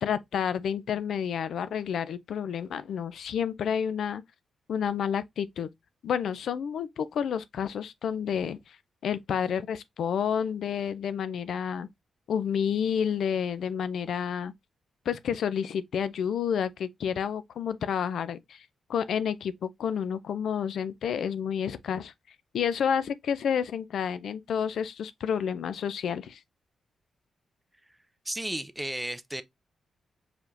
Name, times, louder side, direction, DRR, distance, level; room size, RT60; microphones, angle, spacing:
voice 1, 0.0-4.2 4.7-5.7 6.0-8.8 9.0-11.9 12.3-14.5 15.1-22.1 22.5-26.4, left 8 dB, 75° left, 0.4 m, -30 dB
voice 2, 28.3-29.4, right 1 dB, 5° right, 0.4 m, -33 dB
4.7 x 3.5 x 2.5 m
wide cardioid pair, 140°, 0 cm